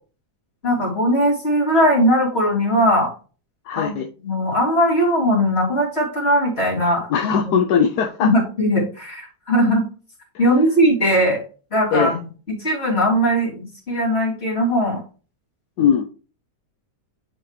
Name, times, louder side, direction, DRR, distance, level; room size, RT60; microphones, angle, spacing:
voice 1, 0.6-3.1 3.7-3.9 4.2-7.6 8.2-9.9 10.4-11.4 11.7-15.0, equal, 35° left, -5 dB, 3.4 m, -19 dB
voice 2, 3.7-4.1 7.1-8.3 11.9-12.1 15.8-16.1, left 7 dB, 75° left, 4 dB, 1.2 m, -19 dB
11.0 x 4.7 x 3.2 m, 0.37 s
omnidirectional pair, 1.8 m